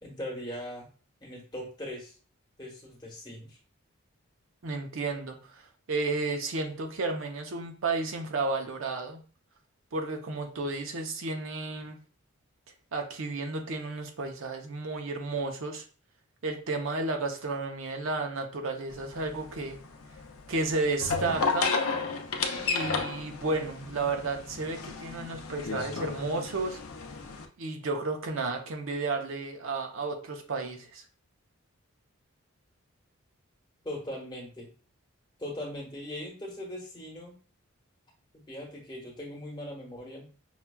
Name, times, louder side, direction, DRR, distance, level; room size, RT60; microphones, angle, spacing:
voice 1, 0.0-0.9 1.2-2.2 2.6-3.6 33.8-34.7 35.4-37.3 38.5-40.3, left 1 dB, 20° left, -3 dB, 1.1 m, -40 dB
voice 2, 4.6-9.2 9.9-12.0 12.9-15.8 16.4-19.8 20.5-21.7 22.6-26.8 27.6-31.0, right 3 dB, 65° right, 3 dB, 0.6 m, -32 dB
sound 1, 18.9-27.4, left 4 dB, 75° left, 0.5 m, -33 dB
5.7 x 2.2 x 2.2 m, 0.38 s
head